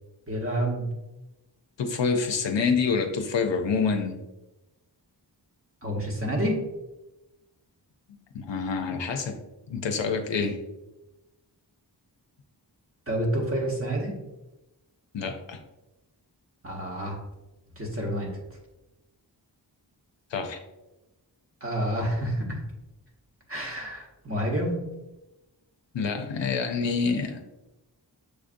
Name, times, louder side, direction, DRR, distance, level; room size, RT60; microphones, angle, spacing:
voice 1, 0.3-0.8 5.8-6.6 13.1-14.1 16.6-17.2 17.8-18.3 21.6-22.6 23.5-24.8, right 1 dB, 30° right, -2 dB, 1.2 m, -28 dB
voice 2, 1.8-4.2 8.3-9.4 9.7-10.6 15.1-15.6 20.3-20.6 25.9-27.4, left 5 dB, 80° left, 4 dB, 0.6 m, -27 dB
6.4 x 2.5 x 2.5 m, 1.0 s
wide cardioid pair, 50°, 44 cm